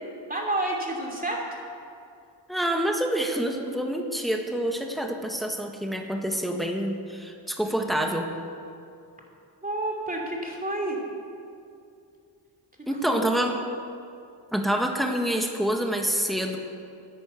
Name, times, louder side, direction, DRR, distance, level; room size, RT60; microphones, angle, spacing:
voice 1, 0.3-1.6 9.6-11.0 12.8-13.3, right 1 dB, 20° right, -1 dB, 2.8 m, -30 dB
voice 2, 2.5-8.3 12.9-13.6 14.5-16.6, right 1 dB, ahead, 3 dB, 1.4 m, -27 dB
11.0 x 9.6 x 8.0 m, 2.5 s
cardioid pair, 85°, 43 cm